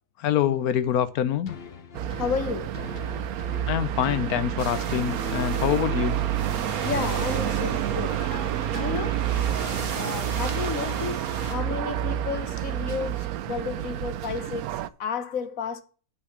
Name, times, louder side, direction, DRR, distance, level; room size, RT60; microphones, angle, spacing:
voice 1, 0.2-1.6 3.6-6.2, left 10 dB, 85° left, 1.2 m, -25 dB
sound 1, 1.5-10.8 11.3-11.4, left 7 dB, 45° left, 1.0 m, -41 dB
sound 2, 1.9-14.9, right 12 dB, 80° right, 1.1 m, -29 dB
voice 2, 2.1-2.8 6.8-8.2 8.7-9.2 9.9-15.8, left 6 dB, 70° left, 1.4 m, -32 dB
sound 3, 4.6-11.5, right 4 dB, 45° right, 1.4 m, -38 dB
8.8 x 4.5 x 7.1 m
omnidirectional pair, 1.5 m